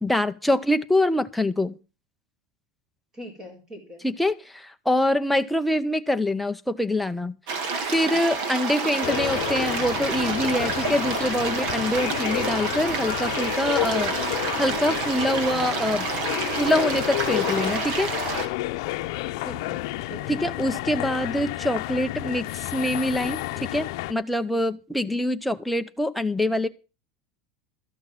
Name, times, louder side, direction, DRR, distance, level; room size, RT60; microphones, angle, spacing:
voice 1, 0.0-1.8 4.0-7.4 7.9-16.1 16.6-18.1 20.3-26.7, left 1 dB, ahead, 7 dB, 0.7 m, -25 dB
voice 2, 3.1-4.1 8.8-9.2 19.4-20.5, equal, 20° right, 3 dB, 4.2 m, -42 dB
sound 1, 7.5-18.5, right 4 dB, 50° right, 2.2 m, -29 dB
sound 2, 9.0-24.1, left 18 dB, 60° left, 0.8 m, -30 dB
13.5 x 6.3 x 7.4 m, 0.33 s
supercardioid pair, 165°, 3 cm